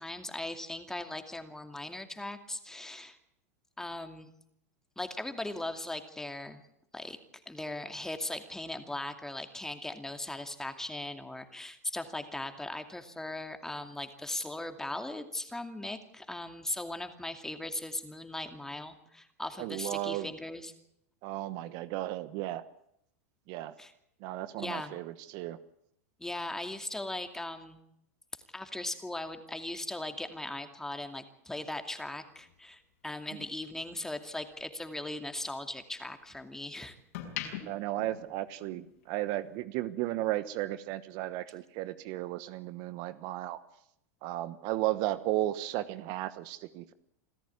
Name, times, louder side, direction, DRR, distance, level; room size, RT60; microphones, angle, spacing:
voice 1, 0.0-3.2 3.8-4.3 5.0-6.6 6.9-7.2 7.5-20.7 23.8-23.9 24.6-24.9 26.2-27.8 28.5-37.0, left 1 dB, 5° left, 7 dB, 2.5 m, -39 dB
voice 2, 19.6-20.3 21.2-22.6 23.5-23.7 24.2-25.6 37.7-43.6 44.2-46.9, right 15 dB, 55° right, 14 dB, 1.1 m, -34 dB
sound 1, 32.3-34.6 35.0-36.5 36.9-39.0 39.3-39.6, left 10 dB, 70° left, 5.8 m, -43 dB
27.0 x 13.5 x 9.7 m, 0.77 s
hypercardioid pair, 115°, 8 cm